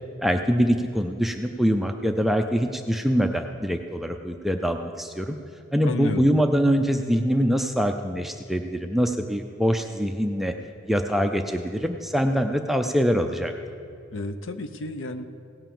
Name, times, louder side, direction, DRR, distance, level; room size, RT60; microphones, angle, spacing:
voice 1, 0.2-5.4 5.7-10.5 10.9-13.5, equal, ahead, 5 dB, 0.3 m, -24 dB
voice 2, 5.8-6.4 14.1-15.3, left 2 dB, 60° left, 10 dB, 0.6 m, -31 dB
17.0 x 5.8 x 7.0 m, 2.4 s
head